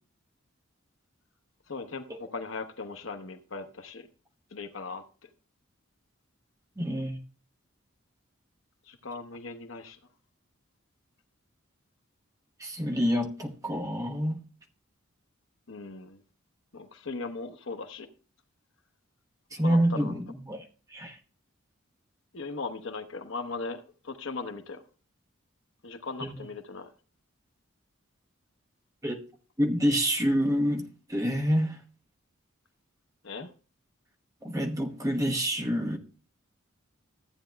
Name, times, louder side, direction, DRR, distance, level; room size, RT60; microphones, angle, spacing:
voice 1, 1.7-4.1 4.5-5.3 8.9-10.0 15.7-16.2 16.7-18.1 19.6-20.2 22.3-24.8 25.8-26.9 33.2-33.5, left 3 dB, 70° left, 0.9 m, -38 dB
voice 2, 6.8-7.2 12.6-14.4 19.5-20.6 20.9-21.2 26.2-26.4 29.0-29.2 29.6-31.8 34.4-36.0, equal, 15° right, 1.1 m, -27 dB
14.5 x 8.7 x 2.3 m
head